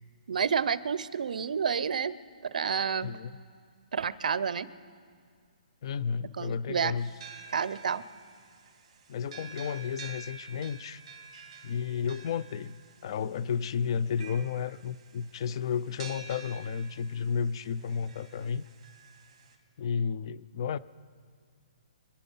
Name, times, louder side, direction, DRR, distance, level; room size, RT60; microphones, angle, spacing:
voice 1, 0.3-2.2 2.5-3.1 3.9-4.7 6.4-6.9 7.5-8.0, right 6 dB, 70° right, 17 dB, 0.7 m, -29 dB
voice 2, 3.0-3.4 5.8-7.1 9.1-11.0 11.6-18.6 19.8-20.8, left 6 dB, 35° left, 18 dB, 0.4 m, -32 dB
sound 1, 7.0-19.5, right 5 dB, 40° right, 2.6 m, -50 dB
26.0 x 10.0 x 5.5 m, 2.1 s
hypercardioid pair, 170°, 4 cm